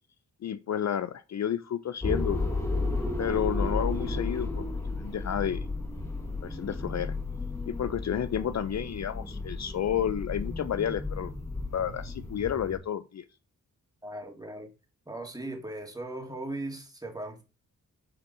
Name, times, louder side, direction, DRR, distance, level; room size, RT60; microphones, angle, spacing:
voice 1, 0.4-2.4 3.2-4.6 5.0-5.6 6.4-7.1 7.7-11.3 11.7-13.2, left 9 dB, 55° left, 0.5 m, -31 dB
sound 1, 2.0-12.8, left 2 dB, 10° left, 2.1 m, -33 dB
voice 2, 14.0-14.7 15.1-17.4, right 1 dB, 10° right, 2.0 m, -38 dB
7.9 x 3.5 x 4.2 m
cardioid pair, 60°, 34 cm